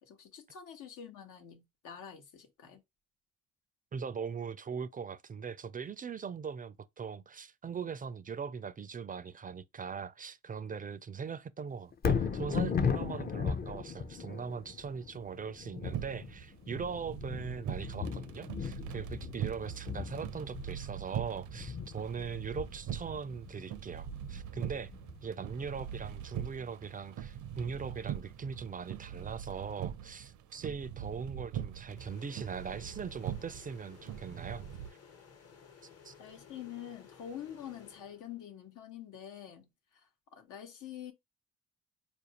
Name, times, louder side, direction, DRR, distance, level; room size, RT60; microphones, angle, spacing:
voice 1, 0.0-2.8 36.2-41.1, left 9 dB, 85° left, 1.1 m, -47 dB
voice 2, 3.9-24.9 25.2-34.7 36.0-36.1, right 6 dB, 30° right, 0.4 m, -40 dB
Thunder, 11.9-26.1 26.6-26.7, left 6 dB, 30° left, 0.5 m, -37 dB
sound 1, 15.8-34.9, right 10 dB, 75° right, 0.5 m, -42 dB
sound 2, 32.0-38.6, left 7 dB, 50° left, 1.1 m, -57 dB
4.4 x 2.5 x 2.8 m
cardioid pair, 90°, 30 cm